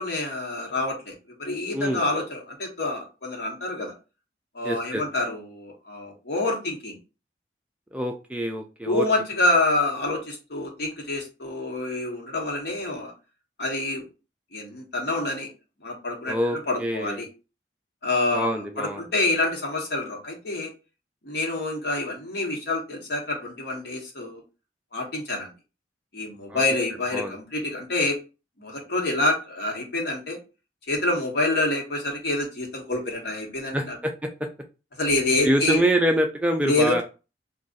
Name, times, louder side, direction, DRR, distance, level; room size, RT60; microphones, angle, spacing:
voice 1, 0.0-3.9 4.5-7.0 8.9-13.1 13.6-14.0 14.5-15.5 15.8-17.3 18.0-20.7 21.2-24.4 24.9-25.5 26.1-28.2 28.6-30.4 30.9-34.0 35.0-35.8 36.6-37.0, left 2 dB, 65° left, 0 dB, 1.1 m, -27 dB
voice 2, 4.6-5.0 7.9-9.1 16.3-17.2 18.3-19.0 26.5-26.6 27.1-27.4 33.7-34.3 35.4-37.0, equal, 10° right, 4 dB, 0.3 m, -25 dB
2.5 x 2.3 x 3.8 m, 0.31 s
head